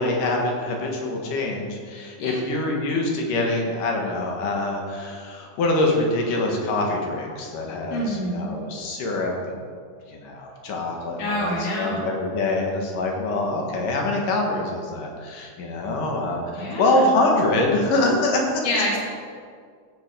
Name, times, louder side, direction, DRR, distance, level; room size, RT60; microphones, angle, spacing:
voice 1, 0.0-9.3 10.1-18.6, left 2 dB, 80° left, 0 dB, 3.2 m, -24 dB
voice 2, 2.2-2.5 7.9-8.6 11.2-12.1 16.5-17.1 18.6-19.0, left 1 dB, 50° left, -4 dB, 3.4 m, -27 dB
16.5 x 6.8 x 5.1 m, 2.1 s
omnidirectional pair, 3.8 m